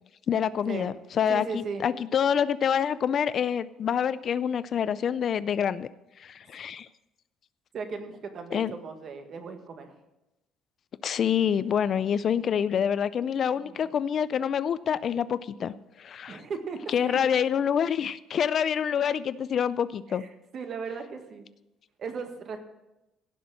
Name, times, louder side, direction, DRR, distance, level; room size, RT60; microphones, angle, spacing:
voice 1, 0.3-5.9 6.2-6.9 8.5-8.7 11.0-16.4 16.9-20.2, left 8 dB, 45° left, 16 dB, 0.4 m, -27 dB
voice 2, 1.3-1.9 7.7-9.9 13.6-13.9 16.3-17.2 20.1-21.5 22.0-22.6, right 5 dB, 45° right, 6 dB, 1.7 m, -37 dB
17.0 x 6.0 x 6.3 m, 0.96 s
cardioid pair, 125°, 0 cm